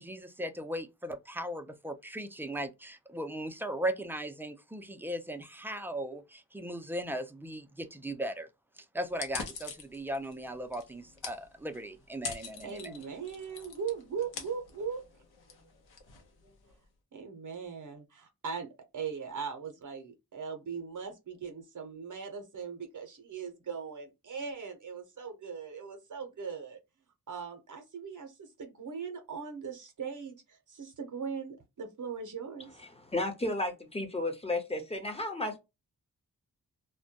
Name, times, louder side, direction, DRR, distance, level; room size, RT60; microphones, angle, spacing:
voice 1, 0.0-8.5 8.8-13.0, right 1 dB, 5° right, 0.4 m, -38 dB
sound 1, 9.1-16.8, left 5 dB, 80° left, 0.8 m, -45 dB
voice 2, 12.6-15.0 17.1-18.7 18.9-26.8 27.3-32.8, right 6 dB, 55° right, 0.7 m, -39 dB
voice 3, 32.8-35.6, left 2 dB, 15° left, 0.8 m, -33 dB
2.1 x 2.1 x 2.7 m
cardioid pair, 60°, 38 cm